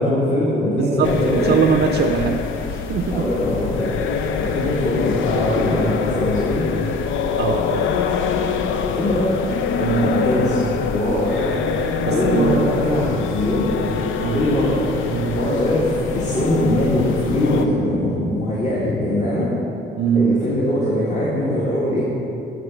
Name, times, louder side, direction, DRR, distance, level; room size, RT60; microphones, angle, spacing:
voice 1, 0.0-1.5 3.1-3.9 4.3-6.7 8.8-9.3 10.0-10.6 10.9-11.4 12.1-13.7 14.3-14.8 15.3-19.5 20.1-22.1, left 1 dB, 35° left, -6 dB, 1.6 m, -21 dB
voice 2, 0.8-3.3 7.4-7.9 9.8-10.1 12.0-12.6 14.2-14.4 15.1-15.4 20.0-20.3, right 7 dB, 55° right, 5 dB, 0.5 m, -22 dB
sound 1, 1.0-17.7, left 6 dB, 80° left, 0.5 m, -24 dB
9.2 x 4.0 x 6.1 m, 2.8 s
cardioid pair, 90°, 20 cm